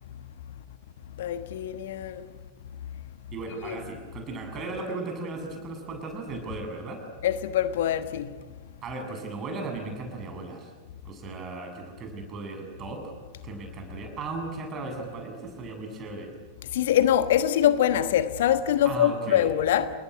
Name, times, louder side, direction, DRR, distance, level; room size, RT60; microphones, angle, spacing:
voice 1, 1.2-2.2 3.6-3.8 7.2-8.3 16.7-19.9, left 10 dB, 55° left, 1.3 m, -24 dB
voice 2, 3.3-7.0 8.8-10.7 11.0-13.1 13.4-16.3 18.8-19.5, right 3 dB, 30° right, 7.6 m, -36 dB
29.5 x 19.5 x 9.9 m
figure-of-eight pair, 90°, 0 cm